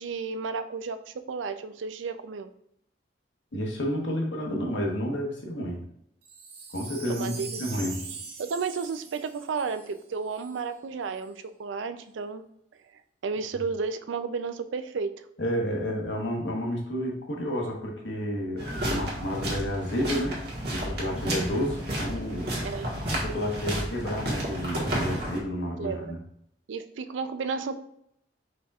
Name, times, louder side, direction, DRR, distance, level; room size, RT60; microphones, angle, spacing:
voice 1, 0.0-2.5 7.1-7.6 8.4-12.4 13.2-15.1 22.6-22.9 25.8-26.1 26.7-27.8, right 5 dB, 85° right, 10 dB, 0.4 m, -32 dB
voice 2, 3.5-5.8 6.7-8.0 15.4-20.4 20.7-22.5 23.1-26.2, equal, 80° left, 0 dB, 1.1 m, -30 dB
Wind chime, 6.2-10.6 11.1-11.2, right 4 dB, 35° right, 0.7 m, -42 dB
sound 1, 18.6-25.4, right 1 dB, 60° right, 1.4 m, -31 dB
5.1 x 4.3 x 2.3 m, 0.73 s
head